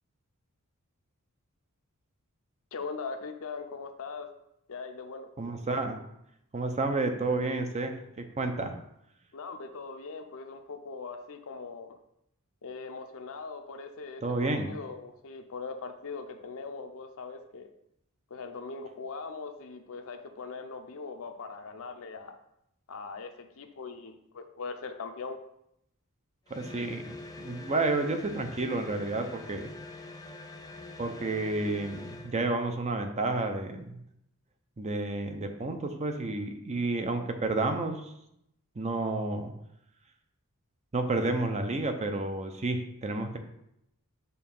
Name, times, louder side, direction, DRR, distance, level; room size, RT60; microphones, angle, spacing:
voice 1, 2.7-4.3 4.7-5.3 9.3-11.9 12.6-17.7 18.3-22.4 22.9-25.4, left 4 dB, 65° left, 6 dB, 0.6 m, -40 dB
voice 2, 5.4-6.0 6.5-8.8 14.2-14.7 26.5-29.7 31.0-34.0 34.8-38.1 38.8-39.5 40.9-43.4, right 2 dB, 30° right, 6 dB, 0.6 m, -31 dB
sound 1, 26.5-32.4, left 2 dB, 15° left, 0.4 m, -45 dB
6.8 x 2.8 x 5.4 m, 0.78 s
head